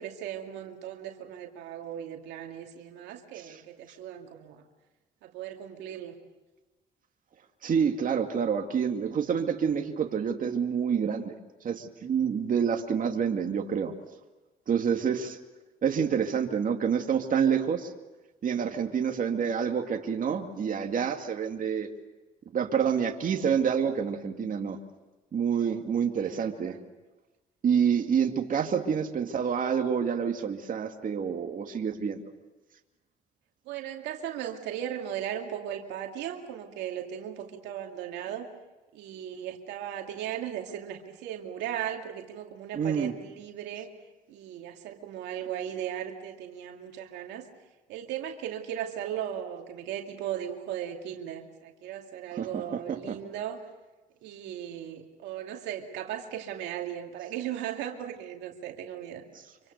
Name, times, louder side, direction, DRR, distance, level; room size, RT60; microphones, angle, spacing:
voice 1, 0.0-4.6 5.2-6.2 26.2-26.8 33.7-38.5 38.9-43.9 44.3-47.5 47.9-53.6 54.2-59.3, right 10 dB, 85° right, 3 dB, 2.4 m, -37 dB
voice 2, 7.6-11.3 11.6-13.9 14.7-15.4 15.8-17.9 18.4-21.9 22.5-24.8 25.3-26.8 27.6-32.2 42.7-43.2 52.3-53.2, right 7 dB, 50° right, 4 dB, 2.3 m, -28 dB
26.0 x 24.5 x 6.7 m, 1.2 s
supercardioid pair, 75°, 18 cm